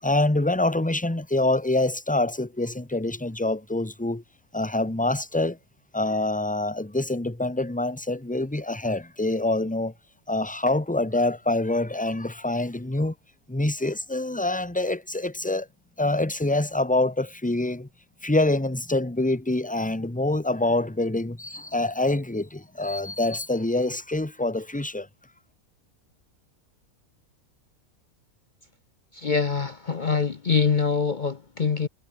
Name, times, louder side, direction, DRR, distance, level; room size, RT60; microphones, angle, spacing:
voice 1, 0.0-4.2 4.5-5.6 5.9-9.9 10.3-13.1 13.5-15.7 16.0-17.9 18.2-25.1, left 2 dB, 5° left, 1.2 m, -25 dB
voice 2, 29.1-31.9, left 5 dB, 40° left, 0.8 m, -24 dB
omnidirectional pair, 1.5 m